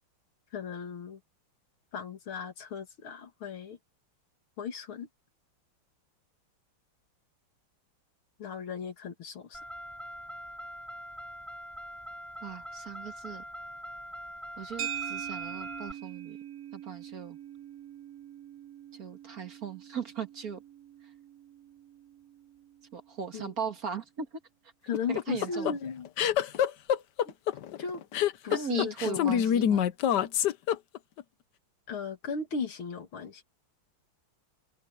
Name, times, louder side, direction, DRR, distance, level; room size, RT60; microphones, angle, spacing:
voice 1, 0.5-1.2 1.9-3.8 4.6-5.1 8.4-9.6 23.3-23.5 24.9-26.1 27.2-27.3 27.8-28.0 28.4-29.5 31.9-33.4, left 6 dB, 80° left, 2.9 m, -36 dB
Car, 9.5-15.9, equal, ahead, 5.9 m, -43 dB
voice 2, 12.4-13.4 14.6-16.4 16.7-17.4 18.9-20.6 21.0-21.1 22.9-24.4 25.1-25.8 28.5-29.9, right 6 dB, 45° right, 2.0 m, -38 dB
sound 1, 14.8-23.2, right 10 dB, 80° right, 0.7 m, -43 dB
sound 2, 24.9-31.2, left 9 dB, 65° left, 1.3 m, -26 dB
omnidirectional pair, 2.3 m